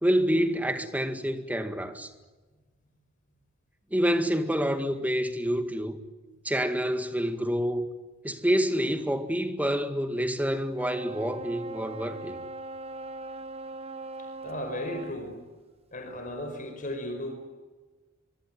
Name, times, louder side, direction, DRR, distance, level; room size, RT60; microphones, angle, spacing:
voice 1, 0.0-2.1 3.9-6.0 6.4-7.9 8.2-12.4, equal, 10° right, 1.9 m, -27 dB
sound 1, 10.8-15.2, right 2 dB, 30° right, 1.1 m, -40 dB
voice 2, 14.4-15.4 15.9-17.3, left 1 dB, 40° left, 5.2 m, -35 dB
24.5 x 24.0 x 9.4 m
head